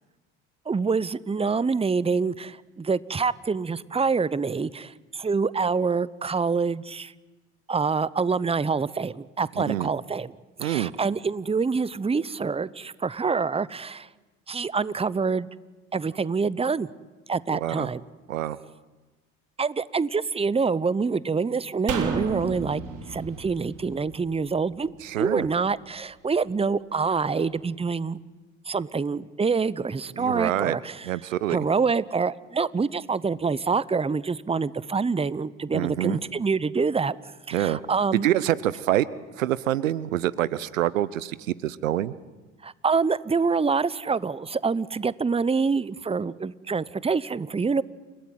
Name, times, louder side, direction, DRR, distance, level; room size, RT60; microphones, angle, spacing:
voice 1, 0.7-7.1 7.7-10.3 10.6-14.1 14.5-15.5 15.9-16.9 17.3-18.0 19.6-22.8 23.1-28.2 28.7-31.1 31.5-37.2 37.5-38.3 42.6-47.8, right 5 dB, 15° right, 20 dB, 0.9 m, -26 dB
voice 2, 9.6-9.9 10.6-10.9 17.5-17.9 18.3-18.6 25.0-25.5 30.2-30.8 31.0-31.6 35.7-36.2 37.5-37.8 38.2-39.1 39.4-42.1, right 13 dB, 85° right, 20 dB, 0.8 m, -26 dB
sound 1, 21.9-25.2 25.5-25.6, right 6 dB, 55° right, 3.5 m, -33 dB
29.5 x 17.0 x 9.3 m, 1.2 s
hypercardioid pair, 60°, 38 cm